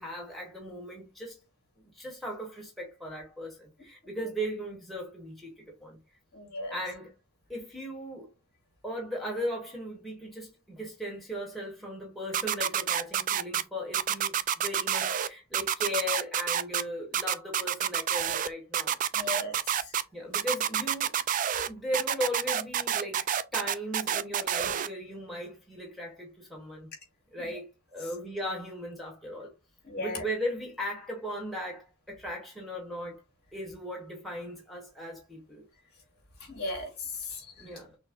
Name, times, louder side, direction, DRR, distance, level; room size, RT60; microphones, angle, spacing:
voice 1, 0.0-1.4 1.8-5.5 5.8-6.0 6.7-7.1 7.5-8.3 8.8-19.0 20.1-21.1 21.7-23.2 23.5-26.9 27.3-29.5 30.0-33.2 33.5-35.6 37.6-38.0, equal, ahead, 1.2 m, -37 dB
voice 2, 6.3-6.7 19.1-19.8 27.4-27.5 29.9-30.2 36.5-37.4, left 2 dB, 50° left, 2.2 m, -36 dB
sound 1, 12.3-13.6 13.9-15.3 15.5-16.8 17.1-18.5 18.7-20.0 20.3-21.7 21.9-24.9, right 9 dB, 40° right, 0.3 m, -28 dB
6.2 x 2.1 x 3.6 m
head